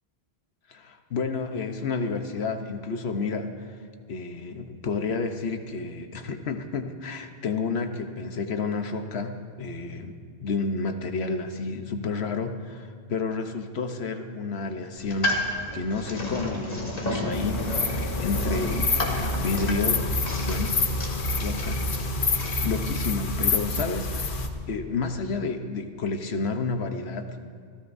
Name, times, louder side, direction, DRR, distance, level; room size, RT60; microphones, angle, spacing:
voice 1, 0.7-3.7 4.1-20.8 21.4-21.8 22.6-27.4, left 4 dB, 85° left, 6 dB, 1.2 m, -31 dB
sound 1, 15.0-22.6, left 1 dB, 40° left, 1.9 m, -32 dB
sound 2, 17.3-24.5, left 3 dB, 55° left, 1.0 m, -27 dB
27.5 x 14.0 x 2.6 m, 2.2 s
omnidirectional pair, 1.0 m